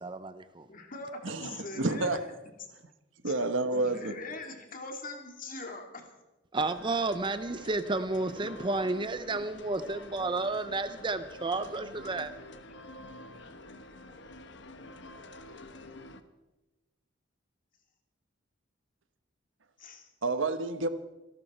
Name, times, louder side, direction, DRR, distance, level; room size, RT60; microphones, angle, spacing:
voice 1, 0.0-0.7 6.5-12.3, right 3 dB, 25° right, 11 dB, 0.6 m, -31 dB
voice 2, 0.7-2.2 3.2-3.4 3.7-6.1 19.8-20.1, left 2 dB, 45° left, 4 dB, 2.5 m, -42 dB
voice 3, 1.2-2.2 3.2-4.2 20.2-20.9, right 2 dB, 80° right, 10 dB, 1.2 m, -29 dB
sound 1, 6.6-16.2, left 2 dB, 65° left, 1.2 m, -48 dB
26.5 x 12.0 x 4.4 m, 1.1 s
head